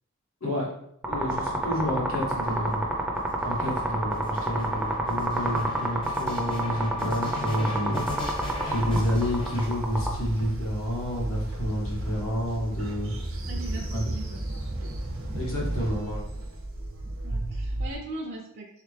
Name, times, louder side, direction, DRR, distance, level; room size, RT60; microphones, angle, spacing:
sound 1, 1.0-10.1, right 1 dB, 5° right, 0.6 m, -28 dB
voice 1, 1.1-2.8 3.4-13.1 13.9-14.0 15.3-16.3, equal, 70° left, -4 dB, 1.6 m, -30 dB
voice 2, 2.1-2.8 13.5-14.4 17.2-18.8, right 2 dB, 50° right, -1 dB, 0.6 m, -40 dB
sound 2, 2.2-10.2 11.0-11.8, left 2 dB, 25° left, 0.8 m, -39 dB
Train, 7.9-17.9, right 1 dB, 80° right, 0.8 m, -33 dB
3.9 x 3.2 x 3.3 m, 0.74 s
head